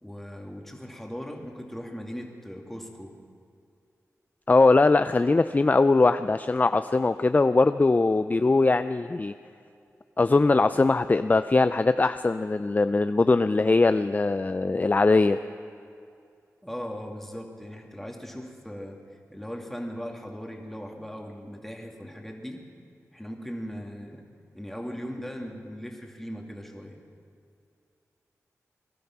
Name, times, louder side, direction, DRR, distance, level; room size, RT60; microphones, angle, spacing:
voice 1, 0.0-3.1 16.6-19.0 19.3-22.6 23.1-24.2 24.5-27.0, equal, 5° left, 1 dB, 2.3 m, -38 dB
voice 2, 4.5-9.3 10.2-15.4, left 3 dB, 30° left, 11 dB, 0.4 m, -21 dB
20.5 x 12.0 x 5.9 m, 2.4 s
cardioid pair, 60°, 6 cm